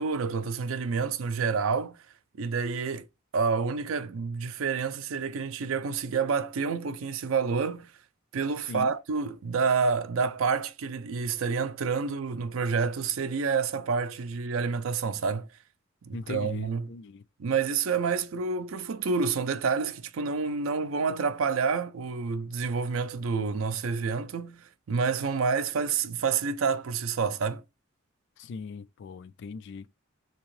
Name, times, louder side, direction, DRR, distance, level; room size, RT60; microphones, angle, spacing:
voice 1, 0.0-2.0 2.4-3.1 3.3-7.9 8.3-15.5 16.0-16.9 17.4-27.6, right 5 dB, 75° right, 0.5 m, -28 dB
voice 2, 16.1-17.2 28.4-29.9, left 5 dB, 60° left, 0.3 m, -39 dB
3.5 x 2.9 x 3.1 m
head